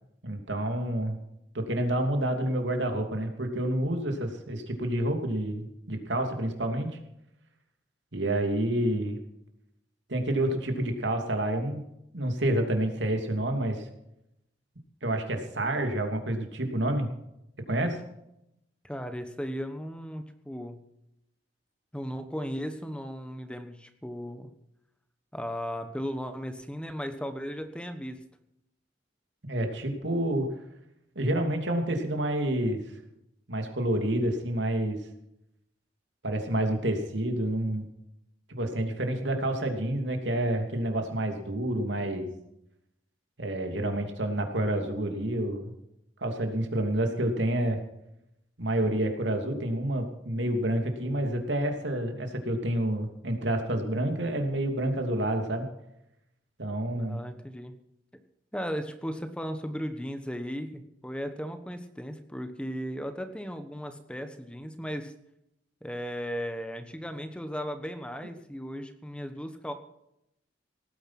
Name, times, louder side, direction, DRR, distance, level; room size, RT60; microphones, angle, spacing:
voice 1, 0.2-1.2 1.5-6.9 8.1-9.2 10.1-11.8 12.1-13.9 15.0-17.1 17.7-18.0 29.4-30.5 31.1-32.8 33.5-35.0 36.2-37.9 38.5-42.3 43.4-45.7 46.2-47.8 48.6-55.7 56.6-57.2, right 1 dB, 70° right, 4 dB, 2.9 m, -28 dB
voice 2, 18.8-20.8 21.9-24.5 25.3-28.2 56.9-57.7 58.5-65.1 65.8-69.7, equal, 5° left, 8 dB, 1.2 m, -36 dB
18.0 x 10.0 x 5.9 m, 0.81 s
head